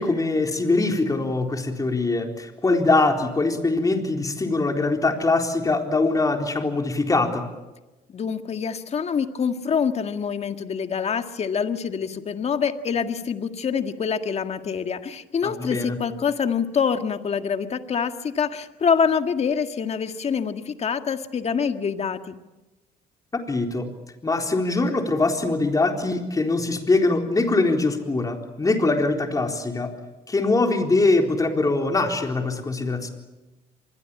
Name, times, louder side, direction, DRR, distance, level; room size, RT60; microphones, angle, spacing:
voice 1, 0.0-7.4 15.4-16.0 23.5-23.9 24.2-29.9 30.3-33.1, left 3 dB, 20° left, 3 dB, 4.0 m, -22 dB
voice 2, 8.1-22.4, left 6 dB, 40° left, 8 dB, 1.8 m, -25 dB
26.0 x 21.5 x 8.7 m, 1.1 s
cardioid pair, 110°, 17 cm